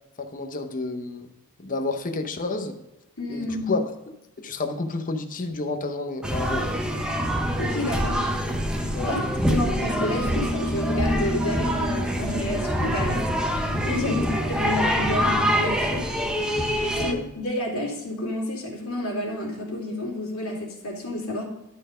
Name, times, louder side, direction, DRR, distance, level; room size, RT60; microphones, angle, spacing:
voice 1, 0.2-1.3 1.6-2.8 3.3-3.8 4.4-6.7 8.9-9.2 9.5-9.6 14.1-14.3 16.9-17.2, left 3 dB, 40° left, 5 dB, 0.9 m, -30 dB
voice 2, 3.2-3.7 7.6-8.3 8.8-9.2 9.5-13.3 13.8-16.1 17.0-21.4, left 1 dB, 80° left, -2 dB, 2.6 m, -30 dB
sound 1, 6.2-17.1, equal, 5° right, 0.8 m, -25 dB
11.5 x 4.4 x 5.0 m, 0.97 s
head